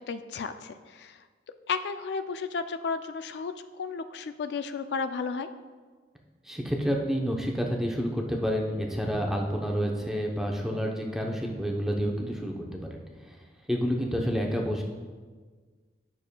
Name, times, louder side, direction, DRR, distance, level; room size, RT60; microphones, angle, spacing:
voice 1, 0.1-1.2 1.7-5.5, left 5 dB, 75° left, 9 dB, 0.3 m, -33 dB
voice 2, 6.5-13.0 13.3-13.4 13.7-14.8, equal, 5° right, 0 dB, 0.7 m, -29 dB
11.5 x 6.7 x 2.2 m, 1.5 s
head